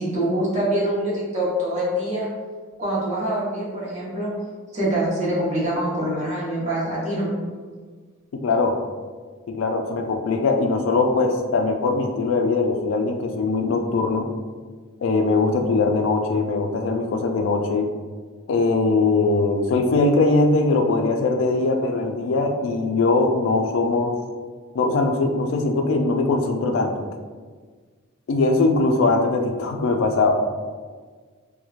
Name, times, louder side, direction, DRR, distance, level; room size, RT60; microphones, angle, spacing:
voice 1, 0.0-2.3 2.8-4.3 4.7-7.4, right 1 dB, 35° right, -8 dB, 0.9 m, -24 dB
voice 2, 8.4-8.8 9.5-14.3 15.0-17.9 18.5-24.2 24.7-27.0 28.3-30.4, left 3 dB, 65° left, 4 dB, 0.3 m, -21 dB
3.0 x 2.1 x 2.4 m, 1.5 s
head